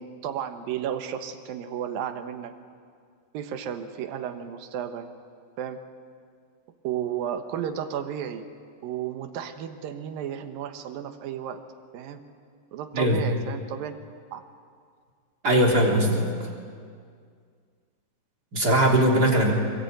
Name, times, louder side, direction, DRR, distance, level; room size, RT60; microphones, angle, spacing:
voice 1, 0.0-2.5 3.3-5.1 5.6-5.8 6.8-8.4 8.8-11.6 11.9-12.2 12.7-14.0 14.3-14.4, right 9 dB, 65° right, 7 dB, 2.6 m, -33 dB
voice 2, 15.4-16.5 18.5-19.5, right 1 dB, 25° right, -1 dB, 3.1 m, -20 dB
23.5 x 23.0 x 9.3 m, 2.1 s
omnidirectional pair, 5.1 m